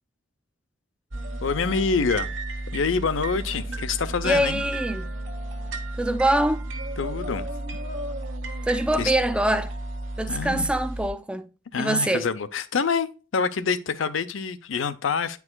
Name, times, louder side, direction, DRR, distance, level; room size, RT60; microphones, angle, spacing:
sound 1, 1.1-11.1, right 2 dB, 80° right, 1.3 m, -33 dB
voice 1, 1.4-2.3 2.7-4.6 7.0-7.5 9.0-9.1 10.3-10.7 11.7-15.4, left 5 dB, 80° left, 0.6 m, -26 dB
voice 2, 4.2-5.1 6.0-6.6 8.7-9.7 10.2-11.5 11.8-12.3, right 1 dB, 5° right, 0.4 m, -24 dB
9.6 x 4.7 x 2.2 m
head